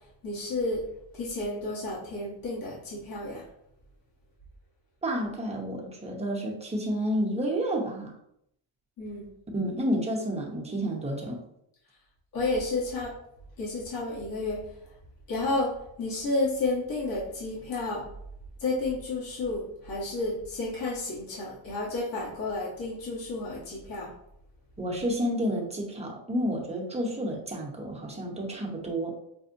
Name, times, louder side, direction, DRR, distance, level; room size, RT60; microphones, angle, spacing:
voice 1, 0.2-0.8 1.1-3.4 9.0-9.3 12.3-13.1 13.6-14.6 15.3-15.7 16.0-18.0 18.6-24.1, left 2 dB, 45° left, -7 dB, 1.3 m, -31 dB
voice 2, 5.0-8.1 9.5-11.4 24.8-29.1, equal, 15° right, -1 dB, 0.8 m, -30 dB
5.3 x 2.1 x 2.6 m, 0.76 s
cardioid pair, 115°, 48 cm